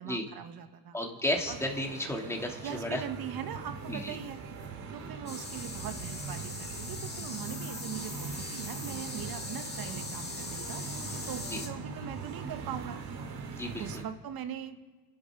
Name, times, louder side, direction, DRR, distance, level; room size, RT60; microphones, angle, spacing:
voice 1, 0.0-1.0 1.5-1.6 2.6-4.4 4.9-13.0 13.8-14.8, right 9 dB, 45° right, 8 dB, 1.7 m, -41 dB
voice 2, 0.9-3.0 3.9-4.2 11.5-11.6 13.5-14.0, left 1 dB, 5° left, 0 dB, 3.0 m, -33 dB
sound 1, 1.4-14.0, right 4 dB, 65° right, 3.5 m, -41 dB
sound 2, 5.3-11.7, left 3 dB, 20° left, 2.5 m, -41 dB
28.0 x 12.0 x 3.9 m, 1.3 s
supercardioid pair, 95°, 48 cm